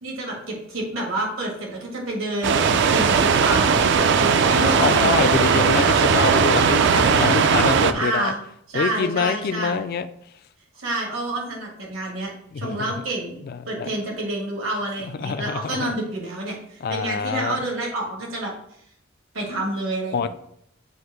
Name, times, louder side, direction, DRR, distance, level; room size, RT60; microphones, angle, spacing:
voice 1, 0.0-5.1 7.9-8.4 8.7-9.9 10.8-12.3 12.6-13.4 13.7-18.5 19.3-20.3, right 1 dB, 85° right, -2 dB, 1.9 m, -28 dB
sound 1, 2.4-7.9, right 6 dB, 60° right, 0.4 m, -18 dB
voice 2, 4.3-8.3 8.7-10.1 12.5-12.8 13.5-13.9 15.2-15.9 16.8-17.6 20.1-20.3, left 5 dB, 50° left, 10 dB, 0.4 m, -25 dB
7.9 x 2.6 x 4.8 m, 0.72 s
head